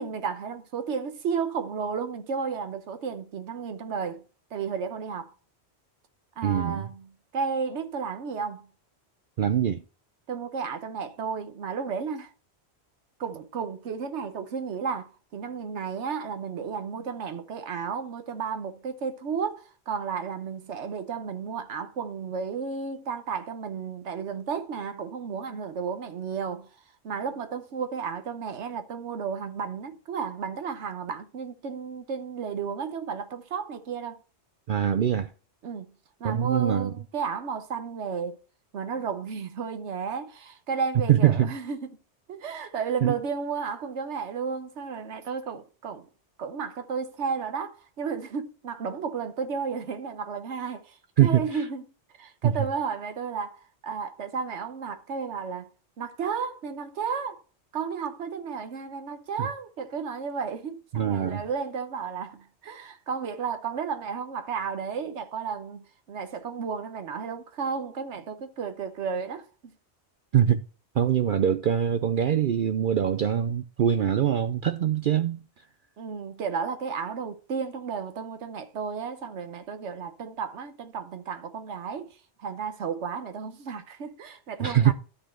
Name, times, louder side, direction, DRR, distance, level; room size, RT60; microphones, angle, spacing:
voice 1, 0.0-4.2 4.5-5.3 6.4-7.1 7.3-8.7 10.3-12.3 13.2-26.7 27.0-34.2 35.6-35.9 36.2-38.4 38.7-41.9 42.3-46.1 46.4-51.8 52.2-55.7 56.0-57.4 57.7-65.8 66.1-69.7 76.0-84.9, right 6 dB, 85° right, 1.2 m, -33 dB
voice 2, 6.4-6.9 9.4-9.8 34.7-35.3 36.2-36.9 41.1-41.5 43.0-43.2 51.2-51.6 52.4-52.6 59.4-59.5 60.9-61.4 70.3-70.6 71.0-75.4 84.6-84.9, right 9 dB, 60° right, 0.6 m, -23 dB
13.0 x 4.4 x 4.3 m
omnidirectional pair, 1.1 m